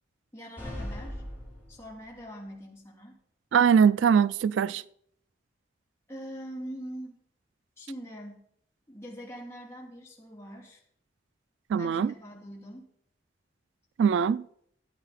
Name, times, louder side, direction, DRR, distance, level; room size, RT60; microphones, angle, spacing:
voice 1, 0.3-1.2 1.7-3.2 6.1-7.2 7.8-8.4 8.9-10.8 11.8-12.9, equal, 15° left, 2.6 m, -43 dB
sound 1, 0.6-2.2, left 1 dB, 10° right, 6.0 m, -39 dB
voice 2, 3.5-4.8 11.7-12.1 14.0-14.4, right 7 dB, 90° right, 0.3 m, -22 dB
14.0 x 8.7 x 4.2 m
head